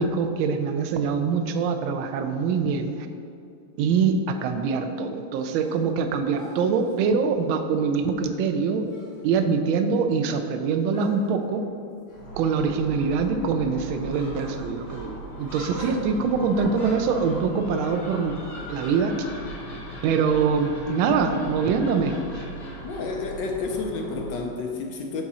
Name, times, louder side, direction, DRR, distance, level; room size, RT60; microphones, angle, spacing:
voice 1, 0.0-2.9 3.8-8.8 9.2-11.6 12.4-18.3 18.7-19.1 20.0-22.2, right 5 dB, 75° right, 7 dB, 1.3 m, -24 dB
sound 1, 5.4-6.0 6.3-7.1 8.5-8.6 8.9-9.4 9.7-9.8 10.9-11.4 12.1-12.3 12.6-12.7 15.7-16.6, equal, 15° left, 0.7 m, -42 dB
Gull seagull, 12.1-24.6, right 1 dB, 45° left, 2.2 m, -38 dB
voice 2, 22.8-25.2, left 4 dB, 70° left, 2 dB, 1.2 m, -30 dB
8.8 x 3.6 x 4.1 m, 2.5 s
omnidirectional pair, 2.3 m